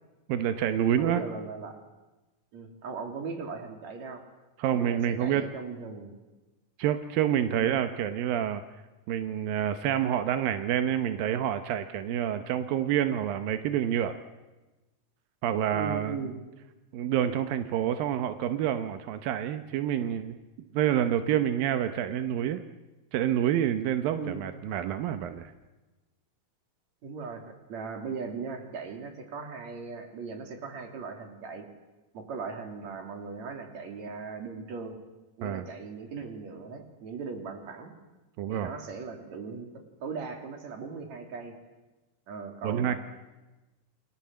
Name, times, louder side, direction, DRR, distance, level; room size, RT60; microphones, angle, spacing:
voice 1, 0.3-1.2 4.6-5.4 6.8-8.6 9.1-14.2 15.4-16.3 16.9-20.4 20.7-22.6 23.1-25.5 35.4-35.6 38.4-38.7 42.6-42.9, right 10 dB, 90° right, 9 dB, 2.8 m, -28 dB
voice 2, 1.0-1.8 2.5-4.2 4.7-6.2 7.5-7.7 15.7-16.4 24.1-24.5 27.0-31.7 32.1-35.0 35.4-37.9 38.5-41.5 42.3-43.0, right 5 dB, 55° right, 4 dB, 3.9 m, -38 dB
29.0 x 22.5 x 7.6 m, 1.1 s
omnidirectional pair, 4.0 m